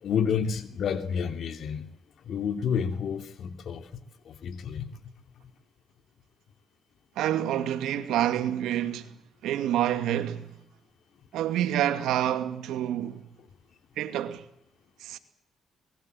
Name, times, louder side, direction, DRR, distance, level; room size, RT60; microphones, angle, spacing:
voice 1, 0.0-1.8 2.3-3.8 4.3-4.9, left 7 dB, 65° left, 2.9 m, -29 dB
voice 2, 7.2-9.1 9.4-10.5 11.3-13.2 14.0-14.4 15.0-15.2, right 11 dB, 85° right, 2.5 m, -28 dB
25.0 x 21.5 x 8.0 m
cardioid pair, 90°, 0 cm